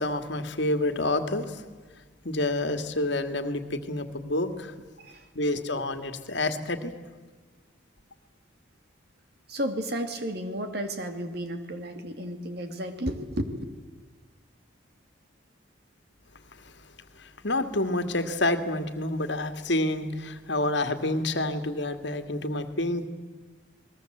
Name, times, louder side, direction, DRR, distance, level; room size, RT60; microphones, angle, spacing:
voice 1, 0.0-1.6 2.2-4.7 5.4-7.0 16.6-16.7 17.2-23.1, left 1 dB, 60° left, 9 dB, 2.0 m, -28 dB
voice 2, 9.5-13.7, equal, 55° right, 7 dB, 2.5 m, -33 dB
28.5 x 20.5 x 7.9 m, 1.4 s
head